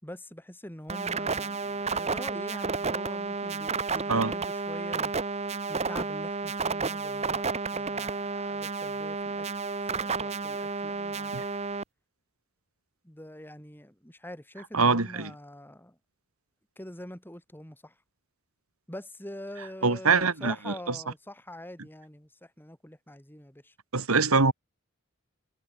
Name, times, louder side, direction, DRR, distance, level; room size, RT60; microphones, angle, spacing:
voice 1, 0.0-5.1 5.7-9.5 9.9-11.4 13.0-16.0 16.8-17.9 18.9-23.7, left 1 dB, 10° left, 3.6 m, -44 dB
sound 1, 0.9-11.8, right 4 dB, 30° right, 1.1 m, -31 dB
voice 2, 14.7-15.3 19.8-21.0 23.9-24.5, right 4 dB, 85° right, 2.3 m, -24 dB
head